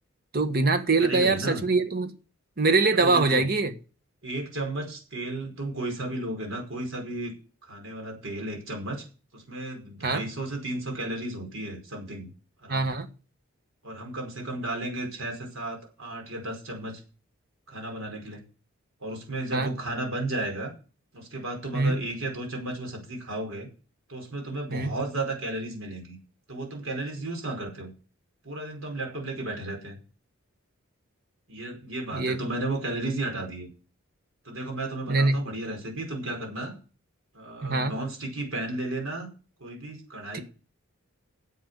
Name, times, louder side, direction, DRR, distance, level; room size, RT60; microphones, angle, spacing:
voice 1, 0.3-2.1 2.6-3.7 10.0-10.2 12.7-13.1 19.5-19.7 21.7-22.0 24.7-25.0 32.1-32.5 35.1-35.4 37.6-37.9 40.3-40.4, right 3 dB, 45° right, 1.5 m, -23 dB
voice 2, 1.0-1.6 3.0-3.5 4.2-7.3 7.6-9.0 9.3-12.3 12.6-12.9 13.8-17.0 17.7-18.4 19.0-20.7 21.1-23.7 24.1-26.2 26.5-27.9 28.4-30.0 31.5-33.7 34.4-36.7 37.3-39.3 39.6-40.4, right 2 dB, 70° right, 5.0 m, -33 dB
10.5 x 7.9 x 6.9 m
head